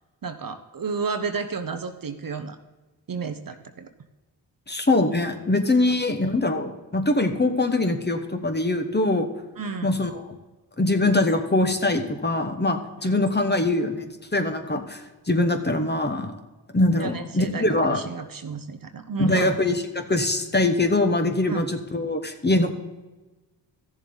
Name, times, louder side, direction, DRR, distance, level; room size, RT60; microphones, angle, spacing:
voice 1, 0.2-2.6 3.1-3.9 5.9-6.0 9.6-10.0 13.0-13.2 17.0-19.6 21.5-21.6, right 5 dB, 50° right, 9 dB, 0.9 m, -32 dB
voice 2, 4.7-9.3 9.8-10.1 10.8-15.0 15.3-16.3 16.7-18.0 19.2-22.7, left 2 dB, 20° left, 6 dB, 1.3 m, -23 dB
14.0 x 7.2 x 4.0 m, 1.1 s
cardioid pair, 50°, 46 cm